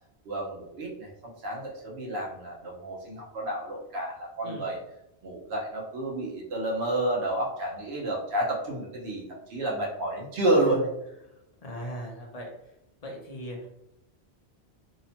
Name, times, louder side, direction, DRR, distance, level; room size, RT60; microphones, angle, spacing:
voice 1, 0.3-1.1 1.4-4.8 5.2-9.2 9.5-10.9, right 1 dB, 70° right, -2 dB, 0.9 m, -30 dB
voice 2, 4.4-4.7 10.7-10.8 11.2-11.3 11.6-12.5 13.0-13.7, equal, 45° left, 0 dB, 0.6 m, -39 dB
2.8 x 2.1 x 2.7 m, 0.83 s
omnidirectional pair, 1.1 m